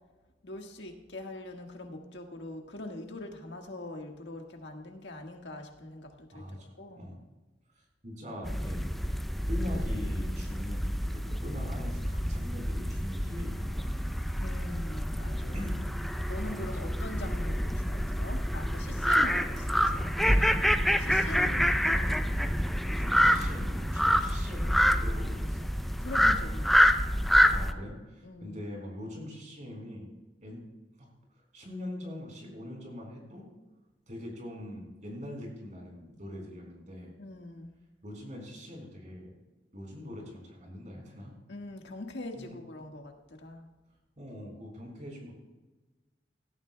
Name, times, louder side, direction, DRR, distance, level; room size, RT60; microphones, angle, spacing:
voice 1, 0.4-7.1 14.4-15.7 16.3-20.1 21.0-21.5 21.8-22.2 26.0-27.1 28.2-28.6 37.2-37.8 41.5-43.7, left 2 dB, 80° left, 3 dB, 1.6 m, -43 dB
voice 2, 6.3-7.2 8.0-8.9 9.5-13.9 15.5-15.8 16.5-16.6 20.2-20.7 21.0-22.0 22.8-25.7 27.5-30.1 30.4-30.6 31.5-33.5 34.1-37.1 38.0-39.3 39.7-41.3 42.3-42.6 44.2-45.4, left 1 dB, 45° right, 0 dB, 4.2 m, -42 dB
sound 1, 8.4-27.7, equal, ahead, 0.5 m, -27 dB
17.5 x 13.0 x 2.2 m, 1.2 s
head